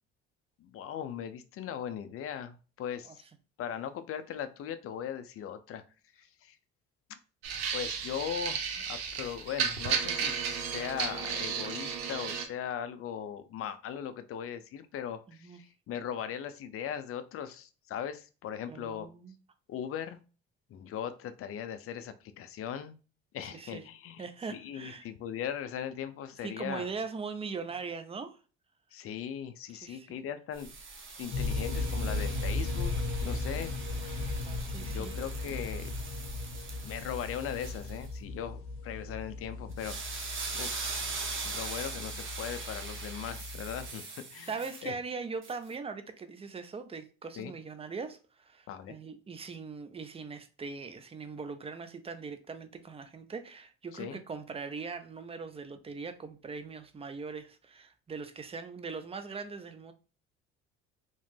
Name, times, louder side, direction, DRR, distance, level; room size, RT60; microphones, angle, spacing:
voice 1, 0.6-3.2 3.6-5.8 6.2-6.6 7.1-7.2 7.7-19.1 19.7-20.2 20.7-23.0 23.3-24.2 24.5-26.9 28.9-30.7 31.2-32.9 33.2-33.8 34.1-34.4 34.9-35.9 36.8-41.0 41.4-44.5 44.8-45.0 47.4-47.5 48.7-48.9 53.9-54.2, left 9 dB, 45° left, 0.5 m, -39 dB
sound 1, 7.4-12.5, right 7 dB, 85° right, 0.6 m, -33 dB
voice 2, 15.3-15.6 18.7-19.4 23.4-23.8 24.2-25.0 26.4-28.4 29.7-30.2 34.0-35.1 41.5-41.6 44.5-59.9, right 4 dB, 20° right, 0.5 m, -41 dB
sound 2, 30.5-38.1 39.7-44.9 45.4-45.5, right 4 dB, 40° right, 0.8 m, -41 dB
sound 3, 31.3-43.9, left 2 dB, 65° left, 0.8 m, -37 dB
2.9 x 2.0 x 3.2 m
hypercardioid pair, 65°, 31 cm